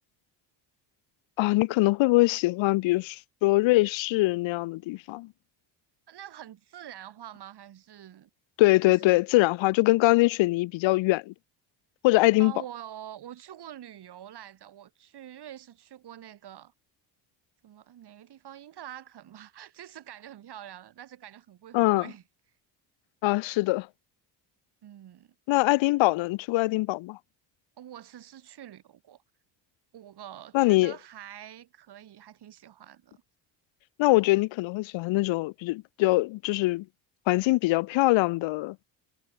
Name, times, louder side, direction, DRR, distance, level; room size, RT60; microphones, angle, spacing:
voice 1, 1.4-5.3 8.6-11.3 12.0-12.5 21.7-22.1 23.2-23.9 25.5-27.2 30.5-30.9 34.0-36.8 37.3-38.8, left 20 dB, 80° left, 1.0 m, -23 dB
voice 2, 6.1-8.3 8.9-9.2 12.4-16.7 17.6-22.2 24.8-25.4 27.8-29.2 29.9-33.2, right 11 dB, 55° right, 7.3 m, -46 dB
cardioid pair, 110°, 46 cm